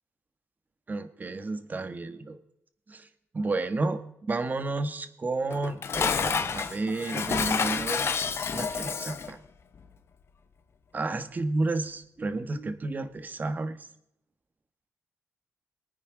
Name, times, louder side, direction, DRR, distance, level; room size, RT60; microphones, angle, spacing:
voice 1, 0.9-2.4 2.9-3.1 3.3-8.0 8.5-9.4 10.9-13.8, right 3 dB, 30° right, 10 dB, 1.3 m, -31 dB
Dishes pots and pans, 5.5-9.3, left 6 dB, 50° left, 1.0 m, -29 dB
22.5 x 9.5 x 3.8 m, 0.76 s
cardioid pair, 85°, 5 cm